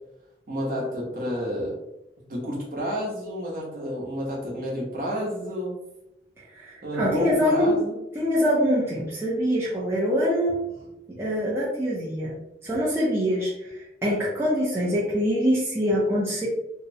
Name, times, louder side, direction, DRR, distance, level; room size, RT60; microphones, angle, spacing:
voice 1, 0.5-1.8 2.3-5.8 6.8-8.0, equal, 50° right, -4 dB, 0.8 m, -30 dB
voice 2, 6.5-7.8 8.1-10.5 11.2-12.3 12.6-16.5, equal, 15° right, -7 dB, 0.4 m, -24 dB
2.8 x 2.0 x 2.6 m, 0.88 s
head